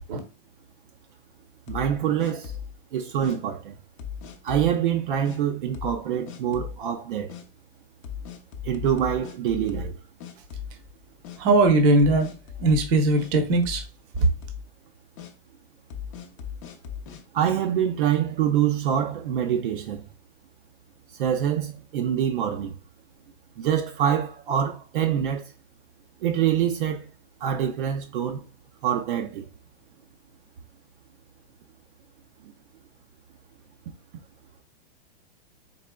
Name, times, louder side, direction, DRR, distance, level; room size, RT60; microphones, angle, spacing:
sound 1, 1.7-2.8 3.2-3.4 4.0-4.7 5.2-5.4 5.7-6.0 6.3-6.8 7.3-7.4 8.0-10.0 10.2-10.9 11.2-11.4 12.0-13.3 13.6-13.9 14.2-14.7 15.2-15.3 15.9-17.2, left 8 dB, 35° left, 0.6 m, -37 dB
voice 1, 1.7-2.5 2.9-3.7 4.4-7.3 8.6-9.9 17.3-20.0 21.2-22.8 23.6-25.5 26.2-27.0 27.4-28.4 28.8-29.4, right 9 dB, 60° right, 0.6 m, -25 dB
voice 2, 11.4-12.3 12.6-13.8, right 2 dB, 30° right, 0.8 m, -19 dB
4.0 x 3.8 x 2.2 m
hypercardioid pair, 155°, 29 cm